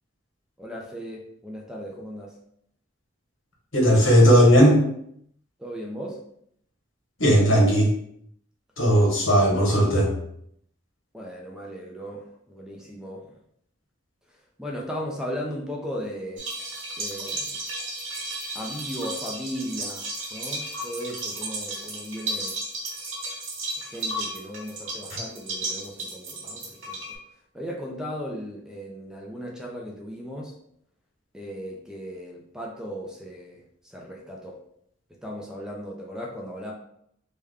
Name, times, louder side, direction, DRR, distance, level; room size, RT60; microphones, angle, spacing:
voice 1, 0.6-2.3 5.6-6.2 11.1-13.3 14.6-16.5 17.0-17.6 18.5-22.6 23.9-27.2 27.5-30.5 31.3-33.6 33.9-34.6 35.2-36.7, equal, 5° right, -1 dB, 0.4 m, -36 dB
voice 2, 3.7-4.8 7.2-7.9 8.8-10.1, equal, 80° left, -2 dB, 1.2 m, -17 dB
sound 1, 16.4-27.2, right 2 dB, 85° right, 1.0 m, -34 dB
3.3 x 2.2 x 3.5 m, 0.71 s
head